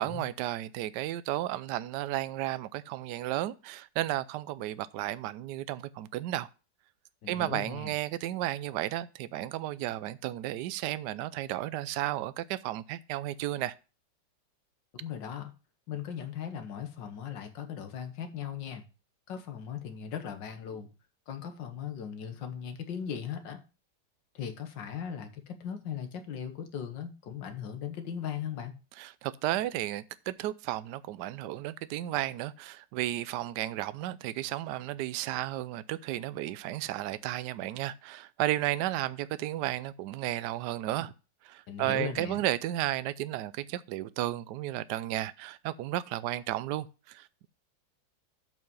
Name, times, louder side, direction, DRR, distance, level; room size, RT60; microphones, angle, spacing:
voice 1, 0.0-6.5 7.3-13.7 29.0-41.1 41.4-47.5, right 14 dB, 75° right, 1.1 m, -33 dB
voice 2, 7.2-7.9 15.0-15.5 15.9-18.8 19.3-20.9 21.3-23.6 24.4-28.7 41.7-42.4, left 8 dB, 90° left, 1.9 m, -38 dB
7.8 x 5.6 x 5.3 m
omnidirectional pair, 1.9 m